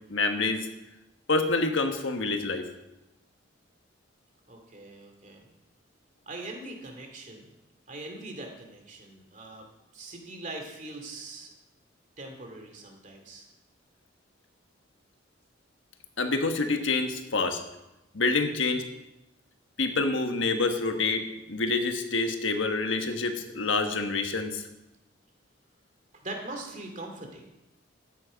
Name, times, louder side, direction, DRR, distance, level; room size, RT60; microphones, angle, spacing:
voice 1, 0.1-0.7 1.3-2.7 16.2-17.6 18.1-18.9 19.8-24.6, left 3 dB, 75° left, 6 dB, 1.4 m, -27 dB
voice 2, 4.5-5.5 6.3-7.5 7.9-9.7 9.9-11.5 12.2-13.5 26.1-27.5, right 2 dB, 40° right, 3 dB, 2.4 m, -41 dB
13.5 x 9.6 x 5.2 m, 0.94 s
head